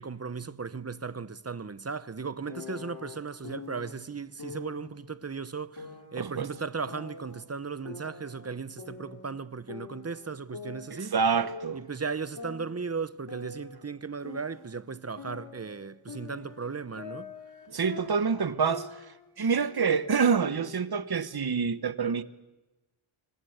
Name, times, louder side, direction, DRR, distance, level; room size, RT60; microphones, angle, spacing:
voice 1, 0.0-11.2 11.7-17.3, right 5 dB, 30° right, 0.8 m, -36 dB
sound 1, 2.5-3.9 4.4-4.9 5.8-7.4 7.9-9.4 9.7-11.9 12.4-14.8 15.2-19.3 19.6-19.9 20.4-21.4, left 4 dB, 50° left, 3.6 m, -44 dB
voice 2, 6.2-6.5 10.9-11.8 17.7-18.9 19.4-22.2, right 6 dB, 45° right, 1.2 m, -27 dB
26.5 x 24.5 x 8.0 m
wide cardioid pair, 130°, 50 cm